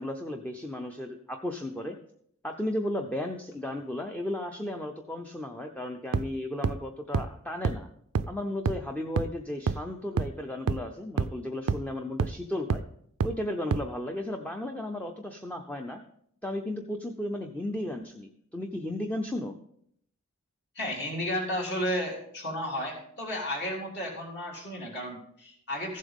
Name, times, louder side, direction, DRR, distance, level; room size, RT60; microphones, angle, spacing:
voice 1, 0.0-2.0 2.4-7.9 8.3-12.8 13.2-16.0 16.4-19.5, left 1 dB, 5° left, 3 dB, 0.6 m, -34 dB
sound 1, 6.1-6.2 6.6-6.7 7.1-7.2 7.6-7.7 8.2-8.3 8.7-8.8 9.2-9.3 9.7-9.8 10.2-10.3 10.7-10.8 11.2-11.3 11.7-11.8 12.2-12.3 12.7-12.8 13.2-13.3 13.7-13.8, right 5 dB, 70° right, 0.4 m, -25 dB
voice 2, 20.7-26.0, equal, 50° left, -2 dB, 3.3 m, -33 dB
15.0 x 7.5 x 3.6 m, 0.68 s
head